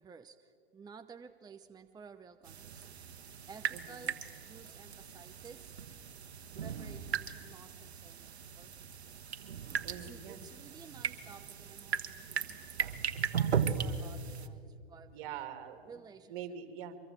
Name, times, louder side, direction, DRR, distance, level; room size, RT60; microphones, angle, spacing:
voice 1, 0.0-5.7 6.6-9.2 10.0-12.5 13.3-15.4 15.9-16.4, right 5 dB, 10° right, 8 dB, 0.8 m, -54 dB
sound 1, 2.5-14.5, right 7 dB, 90° right, 1.4 m, -37 dB
voice 2, 9.8-10.4 15.1-15.8 16.3-17.0, right 9 dB, 60° right, 8 dB, 2.9 m, -44 dB
24.5 x 22.5 x 7.5 m, 2.3 s
hypercardioid pair, 110°, 31 cm